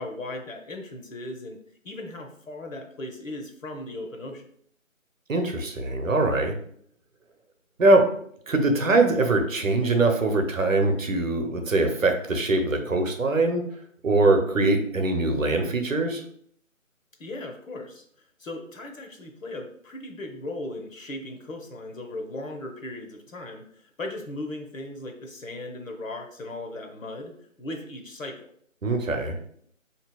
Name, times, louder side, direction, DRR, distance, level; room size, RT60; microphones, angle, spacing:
voice 1, 0.0-1.6 1.8-4.5 17.2-18.0 18.4-28.5, left 2 dB, 70° left, 2 dB, 0.7 m, -37 dB
voice 2, 5.3-6.6 7.8-8.0 8.5-13.6 14.0-16.2 28.8-29.3, right 2 dB, 70° right, 5 dB, 0.7 m, -22 dB
4.1 x 2.7 x 2.2 m, 0.64 s
figure-of-eight pair, 180°, 41 cm